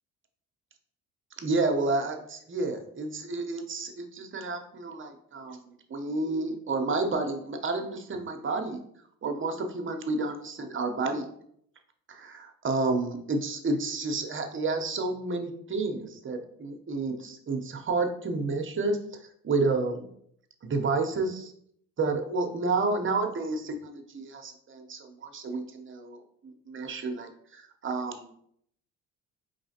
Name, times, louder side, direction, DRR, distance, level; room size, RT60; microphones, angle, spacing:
voice 1, 1.4-5.6 5.9-8.8 9.2-11.3 12.1-19.0 19.4-20.0 20.6-21.5 22.0-28.3, right 3 dB, 30° right, 5 dB, 0.9 m, -30 dB
4.7 x 3.2 x 2.9 m, 0.69 s
hypercardioid pair, 55°, 41 cm